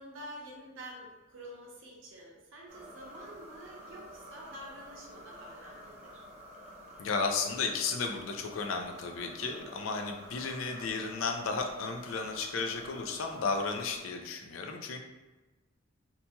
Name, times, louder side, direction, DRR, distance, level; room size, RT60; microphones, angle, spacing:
voice 1, 0.0-6.2, right 1 dB, 70° right, -2 dB, 0.7 m, -48 dB
sound 1, 2.7-14.0, equal, 35° right, 0.5 m, -50 dB
voice 2, 7.0-15.0, left 4 dB, 85° left, 4 dB, 0.4 m, -34 dB
2.8 x 2.2 x 2.8 m, 1.2 s
head